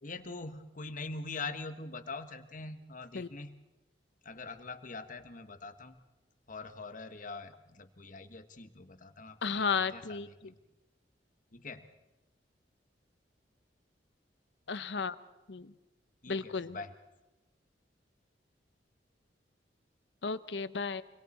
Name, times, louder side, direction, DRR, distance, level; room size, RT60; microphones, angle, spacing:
voice 1, 0.0-3.6 4.2-6.0 6.5-10.5 11.5-11.9 16.2-16.9, left 3 dB, 50° left, 8 dB, 1.3 m, -43 dB
voice 2, 9.4-10.3 14.7-15.2 15.5-15.7 16.3-16.8 20.2-21.0, left 5 dB, 75° left, 14 dB, 0.8 m, -33 dB
28.5 x 22.0 x 4.3 m, 1.1 s
head